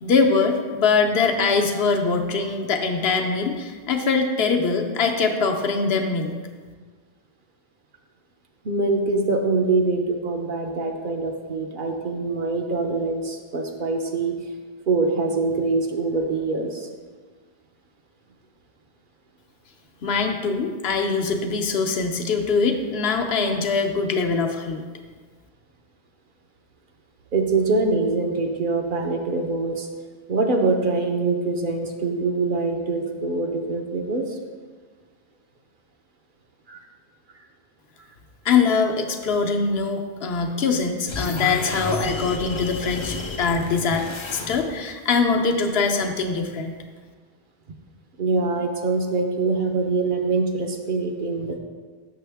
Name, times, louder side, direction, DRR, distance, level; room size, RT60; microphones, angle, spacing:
voice 1, 0.0-6.3 20.0-24.8 38.4-46.7, left 4 dB, 75° left, 3 dB, 0.9 m, -23 dB
voice 2, 8.6-14.3 14.9-16.9 27.3-29.9 30.3-34.4 36.7-36.8 48.2-51.6, right 3 dB, 55° right, 3 dB, 0.8 m, -24 dB
sound 1, 41.1-44.9, left 3 dB, 40° left, 0.4 m, -32 dB
6.8 x 6.3 x 3.4 m, 1.5 s
omnidirectional pair, 1.1 m